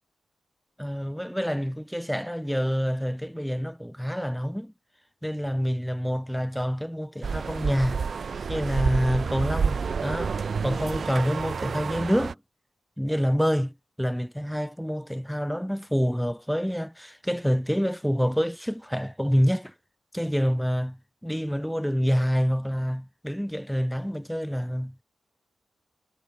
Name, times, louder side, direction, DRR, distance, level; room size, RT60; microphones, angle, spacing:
voice 1, 0.8-4.7 5.2-8.1 8.5-10.3 10.6-12.4 13.0-19.7 20.1-24.9, equal, ahead, 4.5 m, -27 dB
sound 1, 7.2-12.3, right 5 dB, 55° right, 3.5 m, -29 dB
cardioid pair, 80°, 0 cm